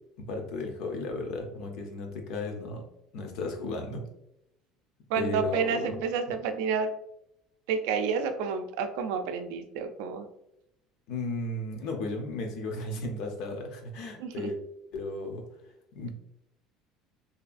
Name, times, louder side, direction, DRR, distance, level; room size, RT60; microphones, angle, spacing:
voice 1, 0.2-2.8 3.1-4.1 5.2-5.9 11.1-14.6 14.9-15.4 15.9-16.1, left 2 dB, 55° left, 3 dB, 0.6 m, -34 dB
voice 2, 5.1-6.9 7.7-10.3 14.2-14.5, right 5 dB, 80° right, 7 dB, 0.3 m, -30 dB
2.7 x 2.3 x 2.4 m, 0.82 s
cardioid pair, 165°, 0 cm